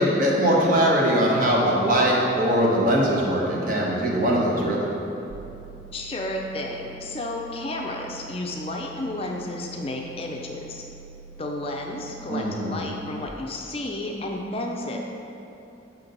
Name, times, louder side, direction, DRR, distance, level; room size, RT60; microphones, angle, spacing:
voice 1, 0.0-4.9 12.3-12.7, equal, 45° right, -3 dB, 1.0 m, -21 dB
sound 1, 5.3-13.3, right 5 dB, 80° right, 0.3 m, -46 dB
voice 2, 5.9-10.8 11.4-15.0, left 1 dB, 30° left, 0 dB, 0.4 m, -32 dB
6.0 x 5.8 x 3.9 m, 2.9 s
head